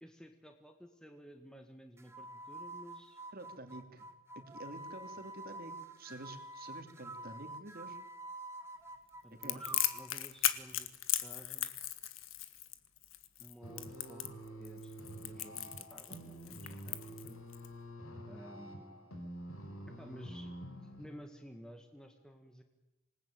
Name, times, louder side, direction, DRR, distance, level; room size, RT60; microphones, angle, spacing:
voice 1, 0.0-3.2 9.2-10.9 11.2-11.8 13.4-14.2 14.6-14.9 15.2-17.4 18.3-19.1 20.0-20.6 21.0-22.6, equal, 5° left, 5 dB, 1.7 m, -53 dB
sound 1, 2.0-10.2, right 2 dB, 10° right, 1.7 m, -48 dB
voice 2, 3.3-4.1 4.3-8.0 9.3-9.6, right 1 dB, 45° right, 6 dB, 2.9 m, -49 dB
Crackle, 9.4-17.7, left 13 dB, 65° left, 1.6 m, -37 dB
sound 2, 13.6-21.1, right 1 dB, 80° left, 4.6 m, -48 dB
26.5 x 19.5 x 9.1 m, 1.0 s
head